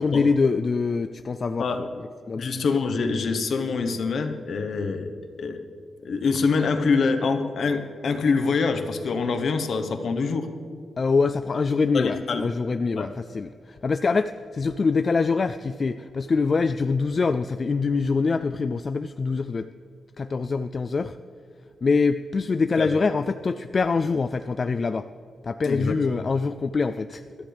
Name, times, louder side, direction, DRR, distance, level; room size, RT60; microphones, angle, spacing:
voice 1, 0.0-2.5 11.0-19.7 20.2-21.2 21.8-25.1 25.4-27.2, left 4 dB, 35° left, 10 dB, 0.3 m, -24 dB
voice 2, 2.3-5.1 5.4-5.6 6.0-10.5 11.9-12.4 13.0-13.1 22.8-22.9 25.6-25.9, left 4 dB, 60° left, 7 dB, 1.1 m, -25 dB
21.5 x 13.5 x 3.5 m, 2.4 s
wide cardioid pair, 145°, 0 cm